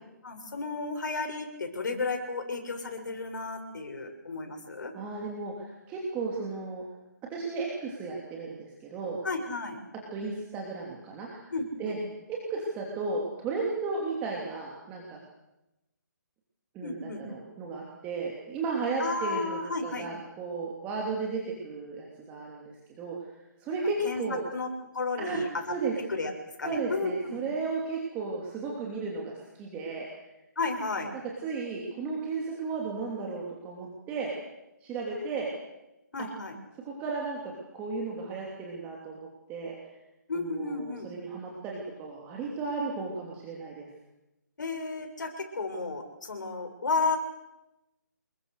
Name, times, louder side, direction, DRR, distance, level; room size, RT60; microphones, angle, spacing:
voice 1, 0.2-4.9 9.2-9.8 11.5-12.0 16.8-17.2 19.0-20.1 24.0-24.2 24.5-25.7 26.1-26.3 26.6-27.4 30.6-31.1 36.1-36.6 40.3-41.1 44.6-47.2, left 3 dB, 70° left, 4 dB, 6.9 m, -33 dB
voice 2, 4.9-6.8 7.3-9.2 10.1-11.5 11.8-11.9 12.3-15.2 16.7-23.3 23.6-24.4 25.2-25.4 25.7-26.0 26.6-30.1 31.1-34.3 34.8-35.5 36.2-36.3 36.8-39.8 40.4-43.9, right 4 dB, 15° right, -2 dB, 3.1 m, -34 dB
27.0 x 22.0 x 6.7 m, 0.96 s
hypercardioid pair, 165°, 10 cm